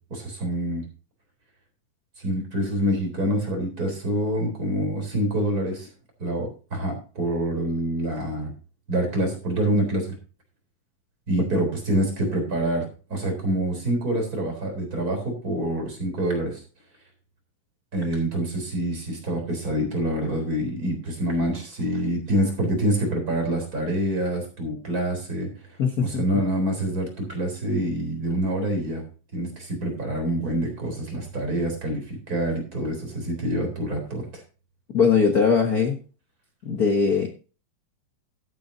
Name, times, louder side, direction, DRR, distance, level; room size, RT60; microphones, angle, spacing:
voice 1, 0.1-0.8 2.2-5.9 6.2-8.5 8.9-10.2 11.3-16.6 17.9-25.5 26.0-29.0 29.3-34.2, right 1 dB, 25° right, 2 dB, 4.1 m, -26 dB
voice 2, 25.8-26.2 34.9-36.0 36.6-37.3, left 5 dB, 75° left, 3 dB, 0.8 m, -20 dB
13.5 x 10.0 x 2.7 m, 0.35 s
omnidirectional pair, 3.7 m